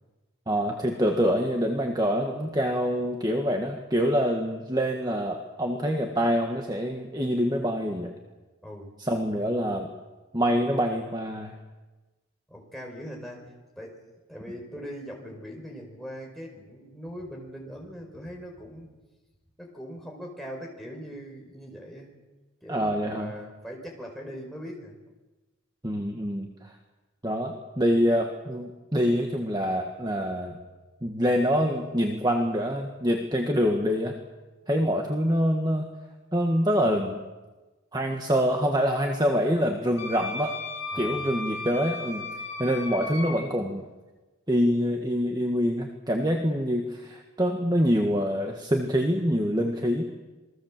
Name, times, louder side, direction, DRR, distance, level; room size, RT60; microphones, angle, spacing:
voice 1, 0.5-8.1 9.0-9.9 10.3-11.5 22.7-23.3 25.8-26.7 27.2-30.6 31.0-34.2 34.7-35.9 36.3-37.2 37.9-40.6 41.0-42.2 42.6-43.8 44.5-50.0, equal, 20° right, 2 dB, 1.7 m, -25 dB
voice 2, 8.6-8.9 12.5-13.4 13.8-14.0 14.3-18.9 19.6-22.2 22.6-25.0 34.8-35.0 40.9-41.3, equal, ahead, -1 dB, 5.1 m, -41 dB
Wind instrument woodwind instrument, 40.0-43.3, left 3 dB, 70° left, 4.3 m, -35 dB
28.0 x 21.5 x 7.6 m, 1.2 s
head